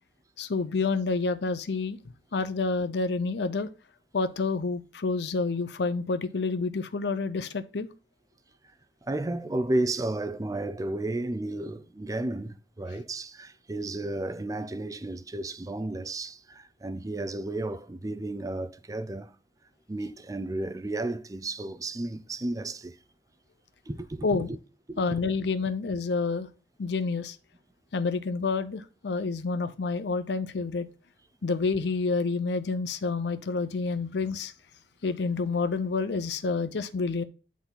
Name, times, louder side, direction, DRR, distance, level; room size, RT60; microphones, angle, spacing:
voice 1, 0.4-2.0 2.3-3.7 4.1-7.9 24.2-24.5 25.0-26.5 26.8-27.4 27.9-30.9 31.4-34.5 35.0-37.2, left 4 dB, 70° left, 0.5 m, -28 dB
voice 2, 9.1-19.3 19.9-23.0 23.9-24.5 24.9-25.2, right 2 dB, 20° right, 0.4 m, -33 dB
10.0 x 4.1 x 3.8 m
head